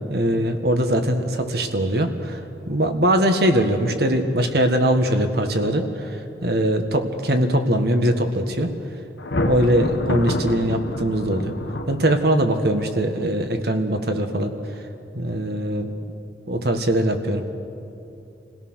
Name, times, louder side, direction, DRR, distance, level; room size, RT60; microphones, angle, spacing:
voice 1, 0.1-2.4 2.7-8.7 9.4-11.5 11.9-14.5 15.1-15.9 16.5-17.4, right 1 dB, 60° right, 6 dB, 1.6 m, -21 dB
Thunder, 9.2-12.5, left 1 dB, 80° left, 1.4 m, -27 dB
28.0 x 17.0 x 6.3 m, 2.9 s
head